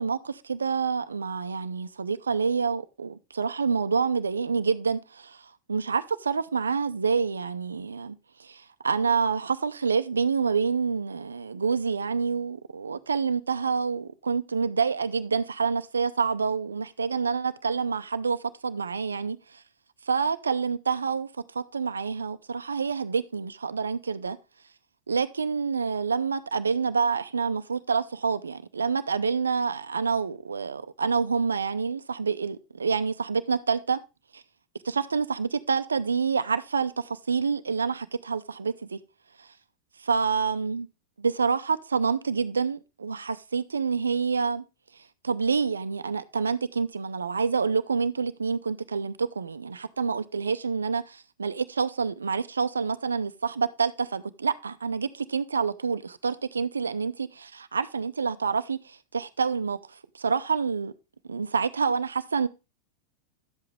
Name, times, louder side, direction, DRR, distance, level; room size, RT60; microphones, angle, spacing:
voice 1, 0.0-19.6 20.0-24.4 25.1-34.0 34.3-34.4 34.8-39.0 39.4-39.5 40.0-40.9 41.2-44.6 44.9-60.9 61.3-62.5, right 5 dB, 85° right, 0.6 m, -27 dB
11.5 x 7.8 x 3.5 m
hypercardioid pair, 95°, 0 cm